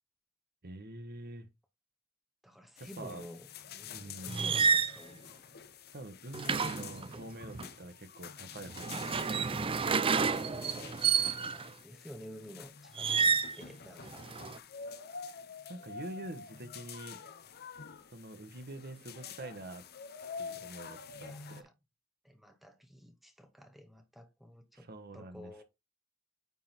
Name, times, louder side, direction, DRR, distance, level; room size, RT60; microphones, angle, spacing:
voice 1, 0.6-1.5 3.0-3.2 3.9-4.4 5.9-9.4 15.7-17.2 18.1-19.8 20.4-21.6 24.7-25.6, right 1 dB, 45° right, 1.2 m, -46 dB
voice 2, 2.4-5.3 11.0-14.3 21.2-21.7 22.2-24.9 25.1-25.6, equal, ahead, 0.8 m, -51 dB
sound 1, 2.8-21.6, left 6 dB, 45° left, 0.8 m, -48 dB
sound 2, 4.3-5.0 6.3-7.7 8.7-11.7 13.0-13.6 14.0-14.6, right 5 dB, 25° right, 0.4 m, -30 dB
9.4 x 3.8 x 4.4 m
head